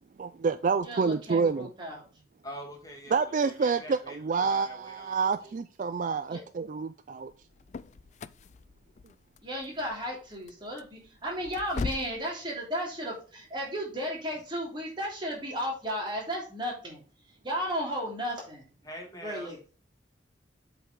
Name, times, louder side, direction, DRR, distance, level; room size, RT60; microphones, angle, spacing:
voice 1, 0.2-1.7 3.1-7.3, right 5 dB, 45° right, 0.3 m, -28 dB
voice 2, 0.8-2.0 6.3-6.4 9.4-17.0 17.4-18.6 19.2-19.6, equal, 25° right, 3.2 m, -34 dB
voice 3, 2.4-5.5 18.8-19.5, equal, 20° left, 2.2 m, -44 dB
sound 1, 7.3-12.2, left 4 dB, 40° left, 0.3 m, -40 dB
7.8 x 5.0 x 3.7 m
head